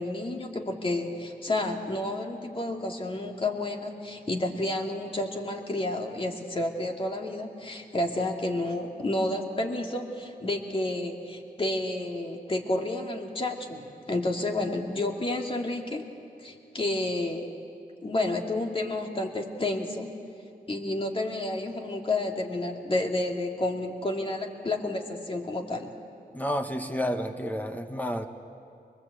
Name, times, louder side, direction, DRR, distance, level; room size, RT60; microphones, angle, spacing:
voice 1, 0.0-16.1 16.4-17.5 18.0-20.1 20.7-25.9, left 2 dB, 35° left, 2 dB, 2.4 m, -30 dB
voice 2, 26.3-28.3, equal, 10° left, 6 dB, 1.3 m, -30 dB
24.5 x 22.0 x 8.2 m, 2.6 s
wide cardioid pair, 110°, 16 cm